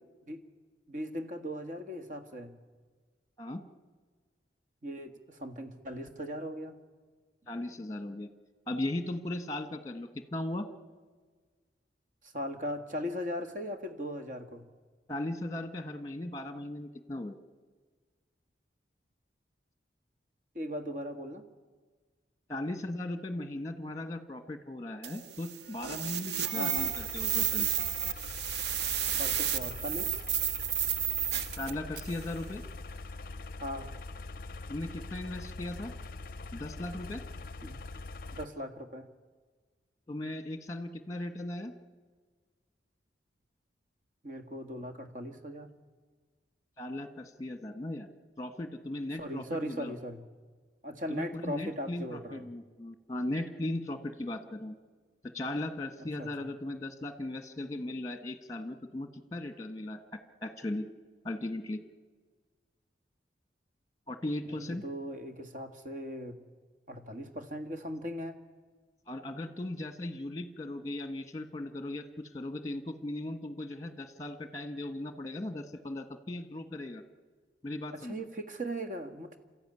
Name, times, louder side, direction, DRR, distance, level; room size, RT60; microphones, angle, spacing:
voice 1, 0.9-2.5 4.8-6.8 12.2-14.6 20.5-21.4 26.5-26.9 29.1-30.2 33.6-34.0 37.6-37.8 38.3-39.1 44.2-45.7 49.1-50.2 50.8-52.5 56.2-56.3 64.5-66.4 66.9-68.4 77.9-79.4, equal, 45° right, 6 dB, 1.6 m, -38 dB
voice 2, 7.5-8.3 8.7-10.7 15.1-17.3 22.5-27.7 31.6-32.6 34.7-35.9 36.5-37.2 40.1-41.7 46.8-48.1 48.4-49.9 51.1-54.8 55.2-60.0 60.4-60.9 61.2-61.8 64.1-64.8 69.1-77.0 77.6-78.2, left 1 dB, 20° left, 9 dB, 1.4 m, -37 dB
sound 1, 25.0-32.2, right 9 dB, 65° right, 0.8 m, -32 dB
sound 2, 26.7-38.5, left 3 dB, 50° left, 0.6 m, -43 dB
27.0 x 14.0 x 9.7 m, 1.5 s
head